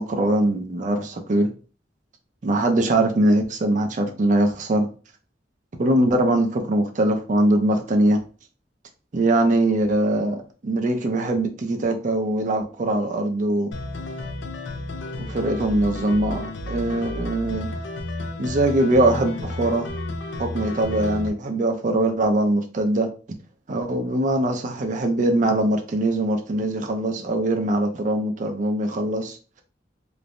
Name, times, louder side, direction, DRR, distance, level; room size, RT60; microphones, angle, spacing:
voice 1, 0.0-1.5 2.4-4.9 5.8-8.2 9.1-13.7 15.2-17.7 18.4-19.9 20.4-23.1 23.7-29.6, right 1 dB, 45° right, 0.5 m, -22 dB
sound 1, 13.7-21.3, left 2 dB, 85° left, 0.4 m, -32 dB
3.1 x 2.1 x 2.5 m
head